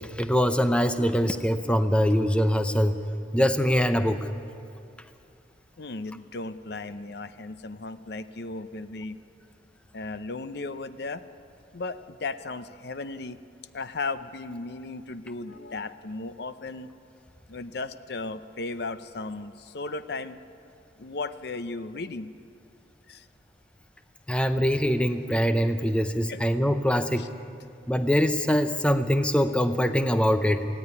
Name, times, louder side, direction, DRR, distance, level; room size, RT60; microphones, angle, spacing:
voice 1, 0.0-3.0 3.3-4.2 24.3-27.3 27.9-30.7, equal, 5° left, 9 dB, 0.6 m, -23 dB
voice 2, 3.8-4.1 5.8-9.2 9.9-11.2 11.7-13.4 13.7-16.9 17.5-20.4 21.0-22.3 23.1-23.2 26.3-26.4 27.2-27.3, left 3 dB, 60° left, 12 dB, 0.6 m, -36 dB
18.5 x 16.0 x 9.8 m, 2.5 s
head